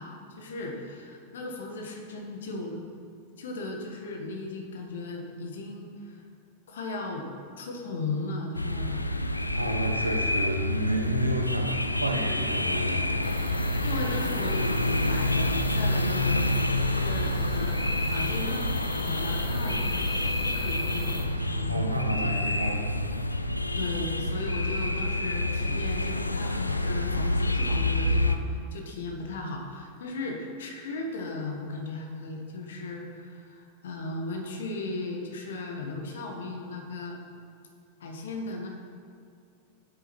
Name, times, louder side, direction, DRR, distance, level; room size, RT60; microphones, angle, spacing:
voice 1, 0.0-2.8 3.4-6.2 6.7-9.0 13.8-16.4 16.9-20.1 20.4-22.6 23.7-37.2 38.0-38.7, left 2 dB, 60° left, 1 dB, 1.6 m, -36 dB
sound 1, 8.5-28.4, left 1 dB, 85° left, 0.5 m, -28 dB
voice 2, 9.5-13.0 21.7-22.9, right 1 dB, 85° right, 2 dB, 1.2 m, -30 dB
sound 2, 13.2-21.3, equal, 10° left, 1.8 m, -40 dB
7.9 x 7.9 x 6.2 m, 2.4 s
figure-of-eight pair, 90°, 0 cm